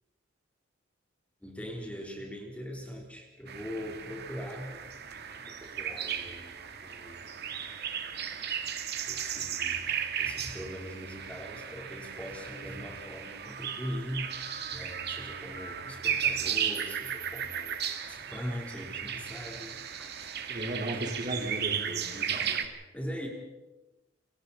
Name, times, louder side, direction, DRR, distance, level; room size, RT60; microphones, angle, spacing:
voice 1, 1.4-4.7 5.3-7.4 9.1-14.4 14.7-20.8 22.2-22.4 22.9-23.3, equal, 5° left, 0 dB, 4.0 m, -41 dB
sound 1, 3.5-22.7, right 8 dB, 55° right, 2.0 m, -35 dB
voice 2, 20.5-22.6, right 1 dB, 40° right, 1 dB, 4.4 m, -35 dB
28.5 x 25.0 x 4.3 m, 1.0 s
head